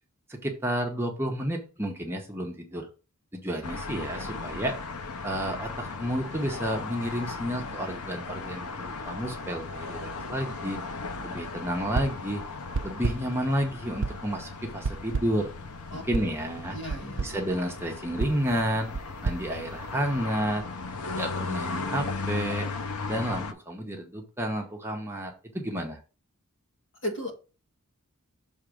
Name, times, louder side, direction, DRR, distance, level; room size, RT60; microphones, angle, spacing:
voice 1, 0.3-2.9 3.3-4.8 5.2-10.8 11.2-12.4 12.8-15.5 15.9-16.8 17.2-18.9 19.2-20.6 21.2-22.7 23.1-26.0, equal, 10° right, 1 dB, 1.0 m, -31 dB
sound 1, 3.6-23.5, left 3 dB, 80° left, 0.8 m, -37 dB
sound 2, 11.9-12.3 12.7-13.4 14.0-14.4 14.8-15.5 16.1-16.4 16.9-17.4 18.2-20.3, right 4 dB, 55° right, 0.5 m, -33 dB
voice 2, 16.7-17.2 27.0-27.3, equal, 55° left, 2 dB, 1.9 m, -34 dB
6.6 x 3.6 x 5.0 m, 0.34 s
head